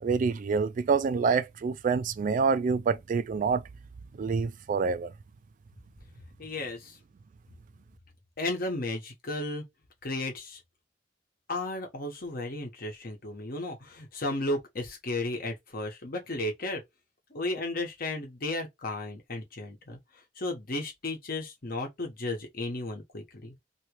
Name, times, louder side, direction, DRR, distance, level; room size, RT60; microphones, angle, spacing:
voice 1, 0.0-3.7 4.1-5.1, right 5 dB, 45° right, 0.3 m, -27 dB
voice 2, 6.4-7.0 8.4-9.6 10.0-10.6 11.5-16.8 17.3-20.0 20.4-23.5, left 2 dB, 55° left, 1.1 m, -34 dB
2.9 x 2.9 x 3.0 m
head